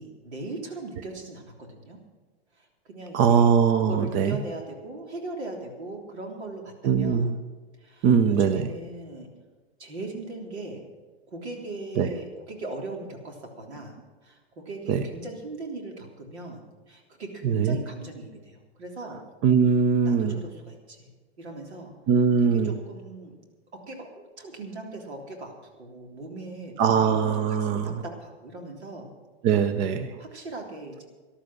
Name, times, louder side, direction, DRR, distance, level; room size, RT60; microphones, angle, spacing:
voice 1, 0.0-2.0 2.6-3.5 3.9-7.3 7.8-9.3 9.8-10.8 11.3-13.9 14.2-19.2 20.1-21.1 21.4-22.0 22.4-23.3 23.7-29.1 30.2-31.0, right 2 dB, 85° right, 1 dB, 3.5 m, -39 dB
voice 2, 3.1-4.4 6.8-7.3 8.0-8.7 12.0-12.1 14.9-15.0 17.4-17.8 19.4-20.4 22.1-22.8 26.8-28.0 29.4-30.2, right 6 dB, 35° right, 10 dB, 0.9 m, -21 dB
13.5 x 12.0 x 6.3 m, 1.3 s
hypercardioid pair, 125°, 32 cm